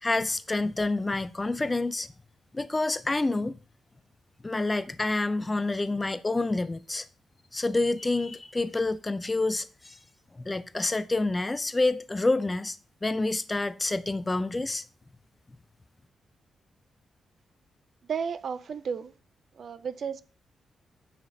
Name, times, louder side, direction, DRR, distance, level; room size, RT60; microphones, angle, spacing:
voice 1, 0.0-2.1 2.5-3.6 4.4-7.1 7.5-10.0 10.4-12.8 13.0-14.8, left 2 dB, 20° left, 0.4 m, -28 dB
voice 2, 18.1-19.1 19.5-20.2, right 6 dB, 60° right, 0.4 m, -33 dB
8.8 x 5.8 x 2.7 m
cardioid pair, 100°, 0 cm